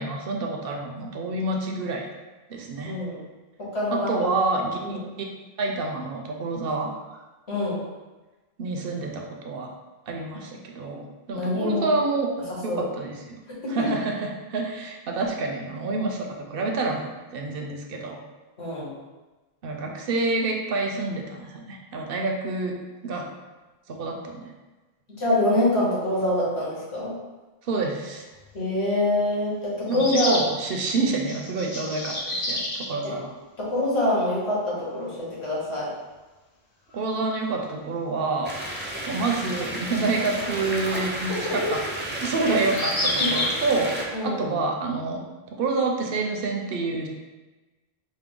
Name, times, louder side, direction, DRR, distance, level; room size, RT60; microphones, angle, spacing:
voice 1, 0.0-2.1 2.5-2.9 3.9-5.0 5.6-7.2 8.6-9.7 10.1-12.3 12.6-13.4 13.7-18.2 19.6-22.8 23.0-23.3 23.9-24.5 27.6-28.3 29.9-32.6 32.9-33.3 36.9-38.6 39.1-41.8 42.2-45.2 45.6-47.1, right 3 dB, 65° right, 2 dB, 0.7 m, -28 dB
voice 2, 2.8-3.2 3.6-4.3 4.8-5.0 7.5-7.8 11.3-11.9 12.7-12.8 13.6-13.9 18.6-18.9 25.2-27.2 28.5-30.3 33.0-33.2 33.6-35.9 41.3-41.7 42.4-42.5 43.2-43.3 44.1-44.4, left 1 dB, 90° left, -7 dB, 1.6 m, -25 dB
sound 1, 28.4-28.5 29.9-30.5 31.2-32.9 34.1-34.2 34.4-34.5 36.9-37.0 40.2-40.3 42.6-43.6, left 1 dB, 45° left, 0.7 m, -28 dB
sound 2, 38.4-44.0, right 1 dB, 15° right, 0.3 m, -32 dB
4.5 x 2.1 x 3.6 m, 1.2 s
omnidirectional pair, 1.1 m